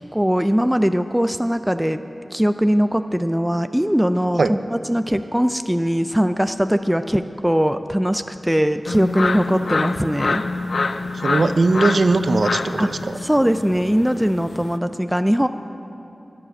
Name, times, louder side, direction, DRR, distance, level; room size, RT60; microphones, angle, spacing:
voice 1, 0.0-2.0 2.3-10.4 12.8-12.9 13.2-15.5, equal, 5° right, 9 dB, 0.4 m, -20 dB
sound 1, 8.8-14.8, left 3 dB, 85° left, 0.5 m, -26 dB
voice 2, 11.2-13.2, right 3 dB, 70° right, 11 dB, 0.5 m, -19 dB
11.5 x 10.0 x 8.0 m, 2.8 s
wide cardioid pair, 55°, 0 cm